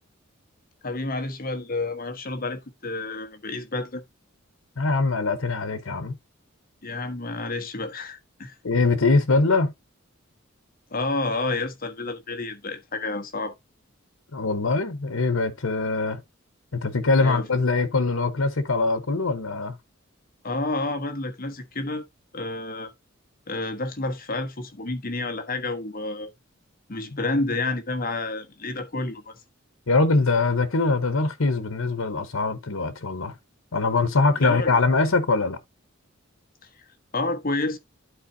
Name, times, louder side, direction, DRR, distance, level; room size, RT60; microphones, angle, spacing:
voice 1, 0.8-4.0 6.8-8.5 10.9-13.5 17.2-17.4 20.4-22.0 22.3-22.9 23.5-26.3 26.9-29.4 34.4-34.8 37.1-37.8, left 2 dB, 45° left, 1.3 m, -29 dB
voice 2, 4.8-6.2 8.6-9.7 14.3-16.2 16.7-19.7 29.9-33.3 33.7-35.6, left 3 dB, 90° left, 1.0 m, -22 dB
11.5 x 4.4 x 2.7 m
head